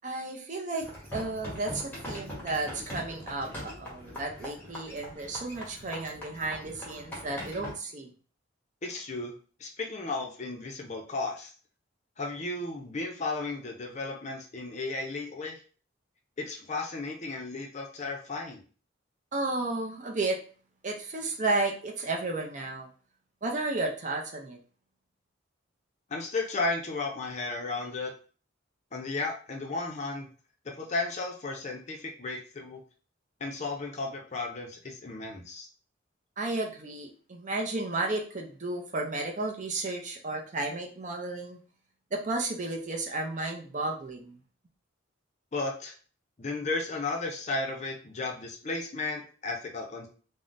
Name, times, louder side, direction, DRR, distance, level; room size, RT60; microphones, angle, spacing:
voice 1, 0.0-8.1 19.3-20.4 20.8-22.9 23.4-24.6 36.4-41.6 42.1-44.4, right 2 dB, 40° right, 1 dB, 0.5 m, -33 dB
sound 1, 0.8-7.7, left 1 dB, 10° left, 0.9 m, -41 dB
voice 2, 8.8-9.3 9.6-11.5 12.2-15.6 16.4-18.6 26.1-28.1 28.9-30.3 30.8-32.8 33.4-35.7 45.5-45.9 46.4-50.1, left 3 dB, 35° left, 1 dB, 0.5 m, -34 dB
3.6 x 2.1 x 2.5 m, 0.39 s
head